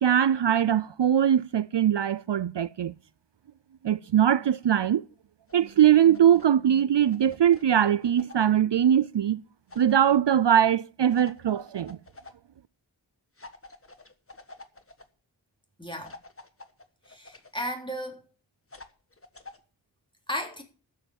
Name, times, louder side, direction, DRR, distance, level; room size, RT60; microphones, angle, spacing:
voice 1, 0.0-2.9 3.8-5.0 5.5-9.4 9.8-12.0, right 9 dB, 65° right, 0.5 m, -21 dB
sound 1, 5.5-6.5 6.8-8.5 9.7-10.1 11.1-12.3 13.4-15.0 16.0-17.6 18.7-19.6, left 3 dB, 30° left, 1.4 m, -48 dB
voice 2, 15.8-16.2 17.1-18.2 20.3-20.6, equal, 10° left, 3.5 m, -34 dB
12.5 x 7.7 x 7.1 m
wide cardioid pair, 60°, 46 cm